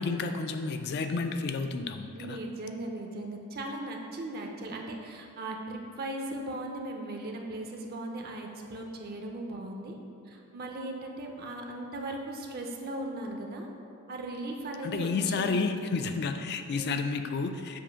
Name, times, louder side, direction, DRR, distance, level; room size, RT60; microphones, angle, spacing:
voice 1, 0.0-2.4 14.8-17.8, left 4 dB, 45° left, 7 dB, 0.3 m, -31 dB
voice 2, 2.1-10.0 10.3-13.7 14.1-15.6 16.7-17.1, right 1 dB, 45° right, 2 dB, 0.5 m, -38 dB
7.2 x 2.5 x 5.6 m, 2.6 s
head